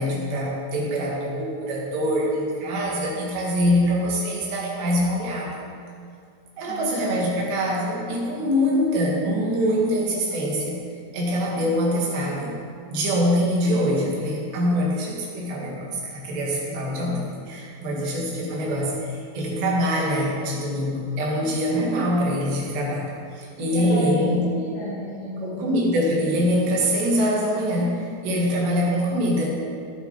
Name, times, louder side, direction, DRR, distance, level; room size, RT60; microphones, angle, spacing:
voice 1, 0.0-5.6 6.6-10.8 11.1-12.6 12.9-24.4 25.4-29.5, equal, 80° right, -3 dB, 4.2 m, -24 dB
voice 2, 23.6-25.8, equal, 85° left, -9 dB, 4.3 m, -32 dB
16.0 x 6.4 x 5.2 m, 2.3 s
omnidirectional pair, 4.9 m